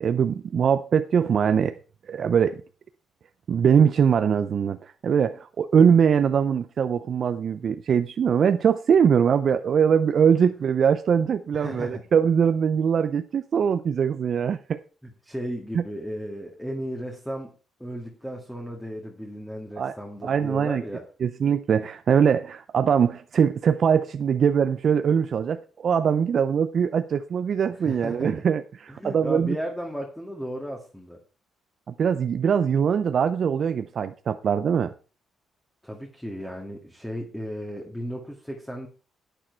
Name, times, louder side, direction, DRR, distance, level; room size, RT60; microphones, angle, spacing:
voice 1, 0.0-1.8 2.1-2.6 3.5-14.8 15.7-15.8 19.8-19.9 20.2-20.8 21.2-29.6 31.9-34.9, right 7 dB, 50° right, 0.6 m, -22 dB
voice 2, 11.5-12.0 15.0-17.5 17.8-21.0 27.8-28.4 28.9-31.2 35.8-38.9, equal, 5° left, 2.0 m, -35 dB
10.0 x 9.1 x 4.5 m
cardioid pair, 100°, 0 cm